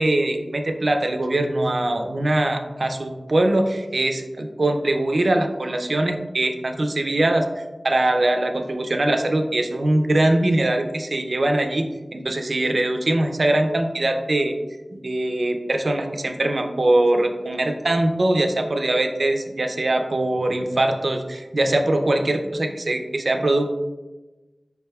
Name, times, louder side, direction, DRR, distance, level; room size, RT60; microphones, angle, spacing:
voice 1, 0.0-11.9 12.1-14.5 14.9-23.7, right 1 dB, 65° right, 5 dB, 0.4 m, -22 dB
4.8 x 3.3 x 2.2 m, 1.1 s
wide cardioid pair, 55°, 0 cm